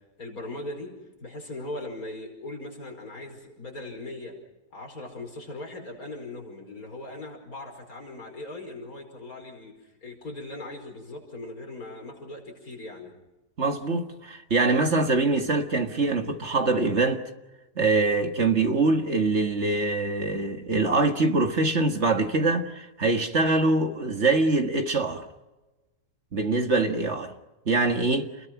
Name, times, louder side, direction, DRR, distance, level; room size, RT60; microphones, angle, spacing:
voice 1, 0.2-0.9 1.2-4.4 4.7-13.1, left 2 dB, 60° left, 5.6 m, -39 dB
voice 2, 13.6-17.2 17.8-25.3 26.3-27.3 27.7-28.3, right 3 dB, 45° right, 2.0 m, -24 dB
29.0 x 21.5 x 6.0 m
omnidirectional pair, 1.7 m